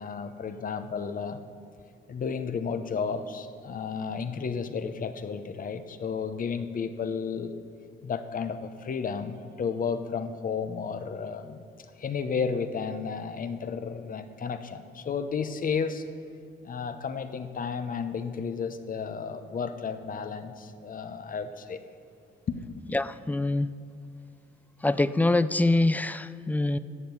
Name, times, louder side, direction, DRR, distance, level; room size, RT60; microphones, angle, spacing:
voice 1, 0.0-1.4 2.1-7.5 8.0-11.6 12.0-16.0 16.6-21.8 22.5-22.7, left 6 dB, 45° left, 10 dB, 0.8 m, -32 dB
voice 2, 22.9-23.7 24.8-26.8, left 2 dB, 10° left, 14 dB, 0.4 m, -24 dB
11.0 x 7.8 x 8.4 m, 2.3 s
cardioid pair, 90°, 20 cm